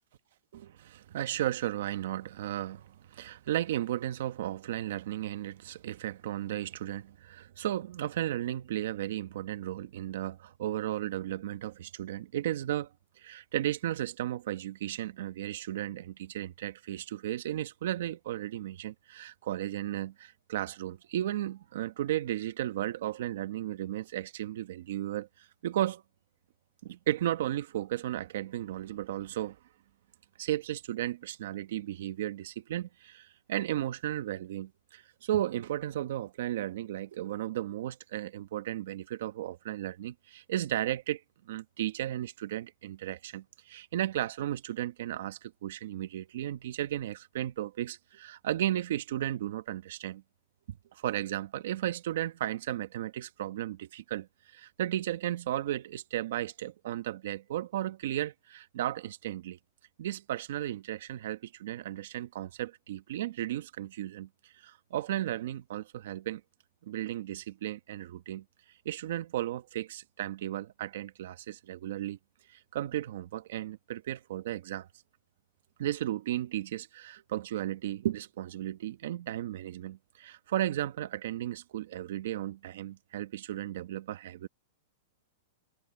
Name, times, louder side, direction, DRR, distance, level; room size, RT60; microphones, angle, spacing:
voice 1, 0.5-12.9 13.2-26.0 26.8-29.6 30.4-50.2 50.7-59.6 60.0-66.4 66.8-68.4 68.8-72.2 72.5-74.9 75.8-84.5, right 13 dB, 50° right, 1.1 m, -35 dB
supercardioid pair, 180°, 0 cm